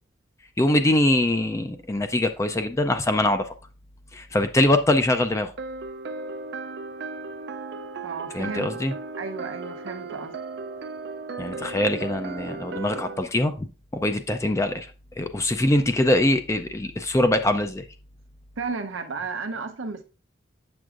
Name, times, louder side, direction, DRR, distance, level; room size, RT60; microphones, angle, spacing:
voice 1, 0.6-3.5 4.1-5.5 8.3-8.9 11.4-14.9 15.2-17.9, left 1 dB, 15° left, 0.4 m, -23 dB
sound 1, 5.6-13.2, right 4 dB, 55° right, 0.4 m, -36 dB
voice 2, 8.0-8.7 9.1-10.3 18.6-20.0, right 4 dB, 85° right, 0.8 m, -33 dB
8.0 x 6.1 x 2.4 m
head